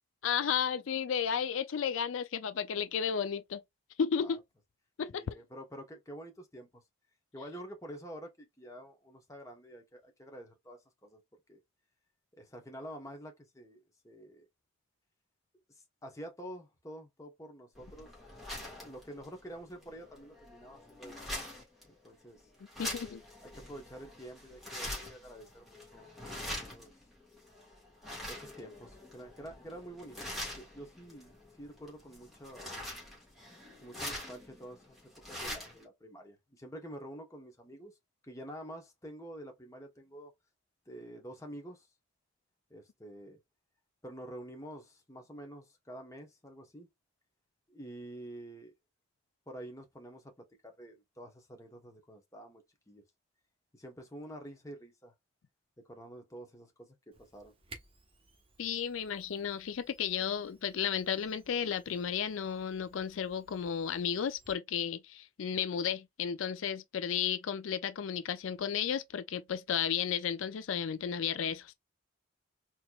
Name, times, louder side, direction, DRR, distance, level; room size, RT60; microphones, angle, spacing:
voice 1, 0.2-3.6 4.0-4.4 5.0-5.4 22.8-23.2 58.6-71.7, left 8 dB, 85° left, 0.4 m, -33 dB
voice 2, 5.1-6.8 7.3-11.2 11.5-11.6 12.4-14.5 15.7-18.1 18.6-21.2 21.8-22.4 23.5-26.9 28.3-32.7 33.8-35.0 35.3-37.9 38.2-40.3 40.9-41.9 42.7-43.4 44.0-46.9 47.7-48.7 49.5-53.0 53.7-55.1 55.8-57.5, right 1 dB, 15° left, 1.0 m, -48 dB
sound 1, 17.7-35.8, left 1 dB, ahead, 1.8 m, -44 dB
Camera, 57.1-64.5, right 3 dB, 30° right, 1.1 m, -59 dB
4.3 x 2.9 x 2.4 m
head